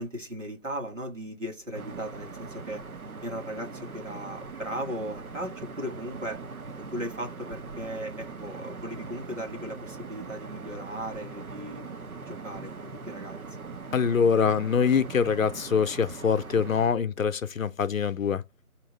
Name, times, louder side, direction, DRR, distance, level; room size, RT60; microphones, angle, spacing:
voice 1, 0.0-2.8 3.2-6.4 6.7-11.8 12.2-13.4, equal, 60° right, 1.5 m, -37 dB
sound 1, 1.7-16.9, right 4 dB, 75° right, 0.8 m, -41 dB
voice 2, 13.9-18.4, left 6 dB, 65° left, 0.6 m, -24 dB
3.9 x 2.9 x 3.9 m
figure-of-eight pair, 170°, 43 cm